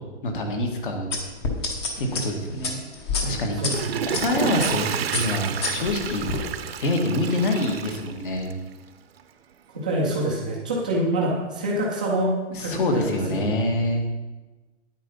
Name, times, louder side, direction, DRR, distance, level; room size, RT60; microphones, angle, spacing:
voice 1, 0.2-1.1 2.0-2.8 3.2-3.6 4.1-4.9 5.1-6.3 6.8-8.5 12.5-14.0, left 1 dB, 45° left, 4 dB, 1.9 m, -25 dB
sound 1, 1.1-4.2 4.6-4.8 5.1-6.4, left 4 dB, 25° left, 1.0 m, -29 dB
Water / Toilet flush, 3.4-8.7 9.2-9.3, right 8 dB, 55° right, 0.8 m, -30 dB
voice 2, 9.7-12.3 12.6-13.5, right 1 dB, 5° right, -5 dB, 0.5 m, -26 dB
9.3 x 9.0 x 5.5 m, 1.2 s
hypercardioid pair, 180°, 36 cm